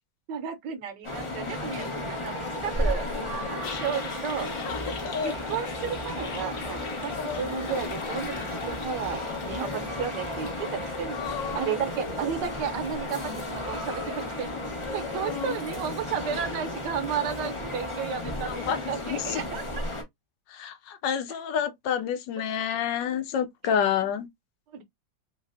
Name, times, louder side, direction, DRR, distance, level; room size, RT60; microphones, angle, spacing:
voice 1, 0.3-3.1 3.3-4.5 5.2-11.2 11.5-14.6 14.9-18.6 18.9-19.9 23.6-23.7 24.7-24.8, right 7 dB, 70° right, 1.2 m, -33 dB
sound 1, 1.0-20.0, left 1 dB, 35° left, 0.4 m, -33 dB
Toilet flush, 2.8-18.0, left 6 dB, 60° left, 1.1 m, -46 dB
voice 2, 4.6-5.4 7.1-7.4 11.1-11.8 15.2-15.6 18.5-19.4 20.5-24.3, left 8 dB, 75° left, 1.2 m, -29 dB
3.2 x 3.1 x 2.5 m
omnidirectional pair, 2.1 m